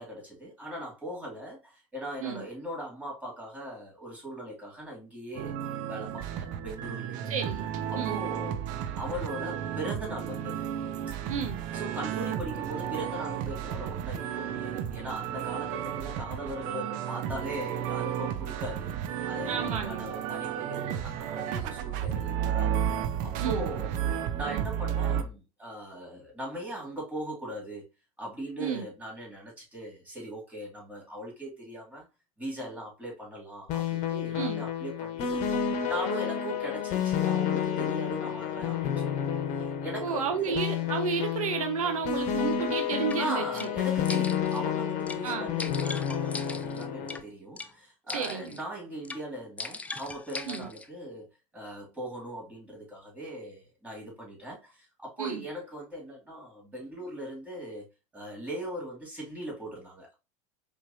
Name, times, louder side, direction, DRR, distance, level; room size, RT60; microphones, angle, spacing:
voice 1, 0.0-5.6 5.9-7.3 7.9-8.6 8.9-10.7 11.7-22.8 23.2-27.9 28.2-32.1 32.4-40.6 43.2-51.3 51.5-57.9 58.1-60.1, right 1 dB, 10° right, 2.6 m, -39 dB
sound 1, 5.3-25.2, right 9 dB, 50° right, 0.6 m, -33 dB
voice 2, 7.3-7.6 8.0-8.2 11.3-11.6 19.4-20.1 23.4-23.6 28.6-28.8 34.3-34.6 40.0-43.7 45.2-45.5 48.1-48.6 50.5-50.7 55.2-55.4, right 6 dB, 85° right, 0.8 m, -32 dB
sound 2, 33.7-47.2, left 8 dB, 45° left, 1.0 m, -30 dB
sound 3, 43.1-43.2 43.6-43.7 44.0-44.6 45.1-45.2 45.6-47.2 47.6-47.7 48.1-48.6 49.0-49.2 49.6-50.9, left 3 dB, 10° left, 0.3 m, -39 dB
4.5 x 3.3 x 2.7 m
hypercardioid pair, 90°, 17 cm